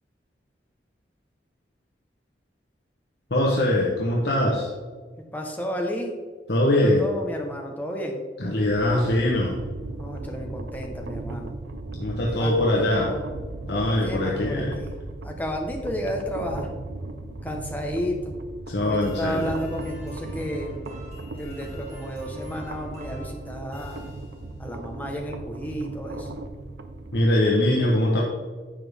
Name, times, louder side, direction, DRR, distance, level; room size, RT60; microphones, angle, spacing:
voice 1, 3.3-4.7 6.5-7.0 8.4-9.6 12.0-13.1 13.7-14.8 18.7-19.5 27.1-28.2, left 1 dB, 70° left, -3 dB, 1.2 m, -22 dB
voice 2, 5.3-6.1 6.7-8.2 10.0-11.5 12.3-13.2 13.7-14.9 15.2-16.7 17.4-18.4 18.8-20.9 21.3-24.1 24.6-26.3, equal, 10° left, 1 dB, 1.2 m, -32 dB
sound 1, 8.6-27.3, right 2 dB, 85° right, 0.7 m, -37 dB
sound 2, 19.0-24.7, equal, 40° right, 2.4 m, -47 dB
10.5 x 7.0 x 3.5 m, 1.5 s
head